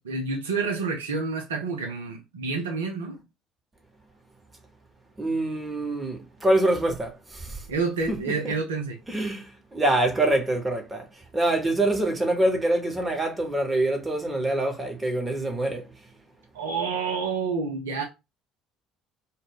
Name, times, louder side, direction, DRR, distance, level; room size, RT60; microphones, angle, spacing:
voice 1, 0.0-3.2 7.7-9.0 16.5-18.0, right 4 dB, 75° right, 0.5 m, -28 dB
voice 2, 5.2-7.7 8.4-8.5 9.1-15.9, right 1 dB, 15° right, 0.9 m, -25 dB
2.0 x 2.0 x 3.6 m
figure-of-eight pair, 55°, 0 cm